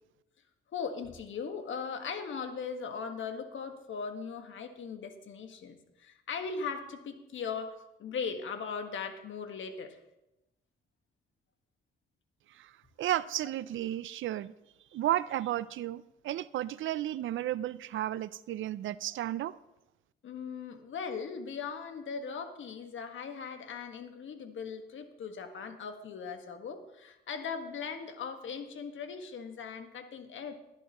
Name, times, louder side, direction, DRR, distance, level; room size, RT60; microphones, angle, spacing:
voice 1, 0.7-10.0 20.2-30.5, left 5 dB, 70° left, 1.6 m, -39 dB
voice 2, 13.0-14.5 14.9-19.6, right 13 dB, 70° right, 0.5 m, -33 dB
19.0 x 10.5 x 3.0 m
supercardioid pair, 60°, 21 cm